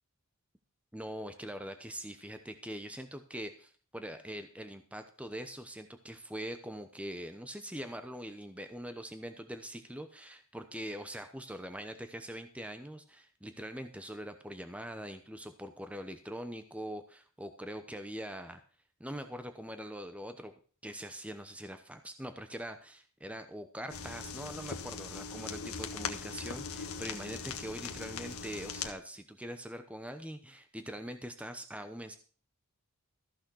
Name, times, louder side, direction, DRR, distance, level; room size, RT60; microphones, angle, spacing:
voice 1, 0.9-18.6 19.0-20.5 20.8-32.2, equal, 5° right, 8 dB, 0.8 m, -43 dB
sound 1, 23.9-28.9, left 5 dB, 70° left, 1.5 m, -40 dB
14.5 x 6.5 x 6.2 m, 0.41 s
head